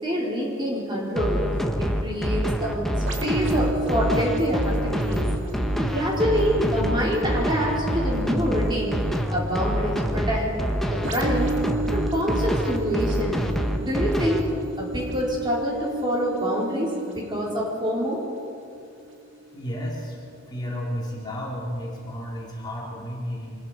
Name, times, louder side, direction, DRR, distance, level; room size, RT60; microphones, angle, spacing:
voice 1, 0.0-1.4 1.8-2.9 3.2-5.3 5.7-9.0 9.3-10.5 10.8-11.5 11.9-13.4 13.8-14.4 14.8-18.2, equal, 25° right, -4 dB, 4.2 m, -26 dB
sound 1, 1.2-14.4, equal, ahead, 1.3 m, -26 dB
sound 2, 3.1-20.6 21.1-21.3, right 2 dB, 75° right, 2.1 m, -34 dB
voice 2, 19.5-20.2 20.5-23.6, equal, 20° left, -4 dB, 3.6 m, -32 dB
25.5 x 20.0 x 5.0 m, 2.4 s
head